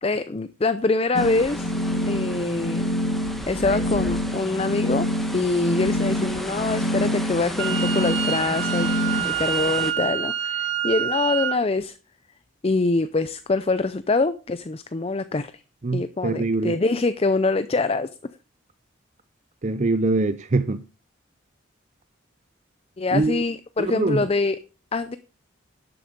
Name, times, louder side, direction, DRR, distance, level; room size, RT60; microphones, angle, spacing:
voice 1, 0.0-1.7 2.1-2.9 3.5-5.1 5.3-8.9 9.2-12.0 12.6-15.5 15.9-18.1 23.0-24.6 24.9-25.2, left 3 dB, 30° left, 0.5 m, -24 dB
sound 1, 1.1-9.2, left 1 dB, 50° left, 1.9 m, -26 dB
sound 2, 1.1-9.9, equal, ahead, 1.5 m, -35 dB
Wind instrument woodwind instrument, 7.6-11.6, right 10 dB, 65° right, 1.2 m, -27 dB
voice 2, 15.8-16.8 19.6-20.8 23.1-23.4 23.8-24.3, right 3 dB, 35° right, 0.5 m, -23 dB
11.5 x 7.7 x 5.2 m
head